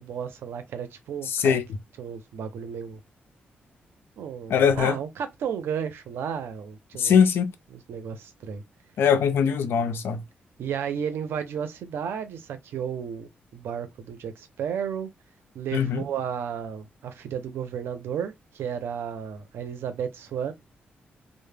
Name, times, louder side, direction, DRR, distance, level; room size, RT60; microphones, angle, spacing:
voice 1, 0.0-1.6 2.0-3.0 4.2-7.2 7.9-8.6 9.4-9.5 10.6-15.1 15.5-20.5, right 8 dB, 85° right, 0.5 m, -33 dB
voice 2, 1.3-1.6 4.5-5.0 7.0-7.5 9.0-10.2 15.7-16.0, left 7 dB, 80° left, 0.4 m, -21 dB
2.1 x 2.0 x 3.2 m
cardioid pair, 125°, 4 cm